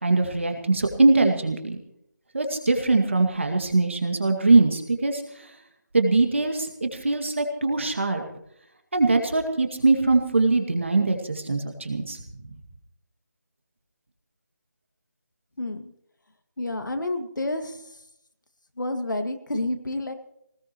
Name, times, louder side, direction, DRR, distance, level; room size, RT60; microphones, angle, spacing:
voice 1, 0.0-1.8 2.3-5.2 5.9-8.2 8.9-12.2, right 3 dB, 40° right, 5 dB, 2.1 m, -22 dB
voice 2, 15.6-15.9 16.6-17.8 18.8-20.1, left 2 dB, 70° left, 6 dB, 2.1 m, -29 dB
21.0 x 19.5 x 3.1 m, 0.77 s
figure-of-eight pair, 180°, 10 cm